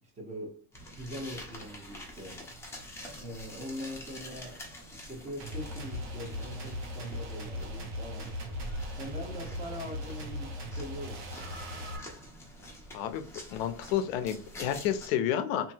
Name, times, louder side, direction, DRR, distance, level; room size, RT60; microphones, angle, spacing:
voice 1, 0.0-0.6 0.9-2.5 3.2-4.6 4.9-8.3 9.0-11.9, equal, 15° right, 0.9 m, -42 dB
sound 1, 0.7-15.1, equal, 5° left, 0.6 m, -46 dB
sound 2, 5.4-12.0, left 1 dB, 80° right, 1.1 m, -39 dB
voice 2, 12.9-13.2 13.5-15.7, left 10 dB, 65° left, 0.6 m, -30 dB
2.8 x 2.7 x 2.7 m
supercardioid pair, 135°, 44 cm